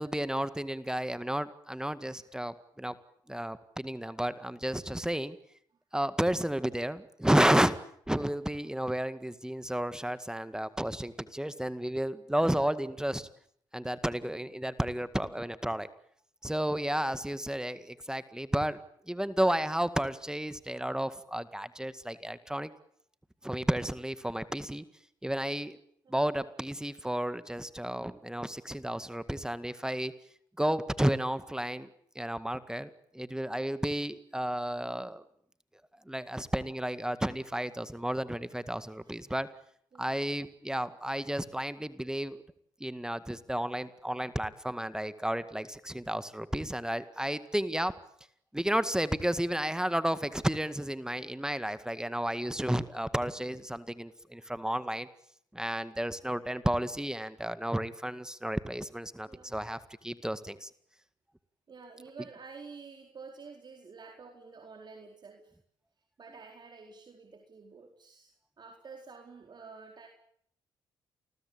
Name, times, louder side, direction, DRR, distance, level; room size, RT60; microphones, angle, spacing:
voice 1, 0.0-3.0 3.3-5.4 5.9-7.8 8.1-13.3 13.7-15.9 16.4-18.8 19.1-22.7 23.4-24.8 25.2-25.8 26.1-30.1 30.6-31.9 32.2-35.2 36.1-39.5 40.0-42.4 42.8-47.9 48.5-55.1 55.5-60.7, right 1 dB, 5° right, 13 dB, 1.9 m, -32 dB
voice 2, 38.8-39.2 39.9-40.2 59.3-59.7 61.7-65.5 66.2-70.1, right 4 dB, 45° right, 3 dB, 4.4 m, -50 dB
29.0 x 21.5 x 8.8 m, 0.68 s
hypercardioid pair, 50°, 11 cm